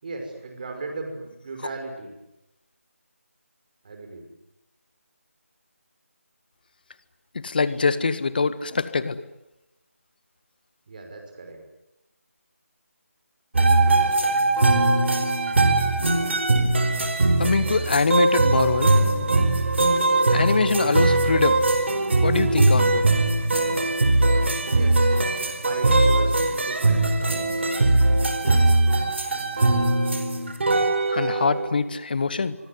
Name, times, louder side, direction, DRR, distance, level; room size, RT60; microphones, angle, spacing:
voice 1, 0.0-2.1 3.8-4.3 10.9-11.6 24.7-27.7, right 3 dB, 35° right, 4 dB, 5.8 m, -37 dB
voice 2, 7.3-9.2 17.4-18.9 20.3-21.6 22.2-23.1 31.1-32.6, left 4 dB, 40° left, 15 dB, 1.6 m, -23 dB
sound 1, 13.5-31.7, right 2 dB, 50° right, 4.4 m, -20 dB
24.5 x 24.0 x 9.7 m, 0.90 s
figure-of-eight pair, 165°, 8 cm